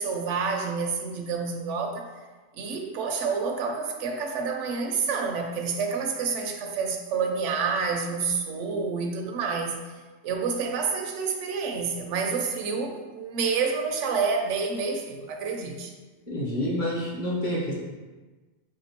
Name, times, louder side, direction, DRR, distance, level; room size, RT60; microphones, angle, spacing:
voice 1, 0.0-2.1 2.6-9.8 10.2-15.9, right 5 dB, 75° right, 3 dB, 0.9 m, -28 dB
voice 2, 16.3-17.7, equal, 40° left, -4 dB, 1.0 m, -28 dB
3.1 x 2.8 x 4.3 m, 1.3 s
omnidirectional pair, 1.3 m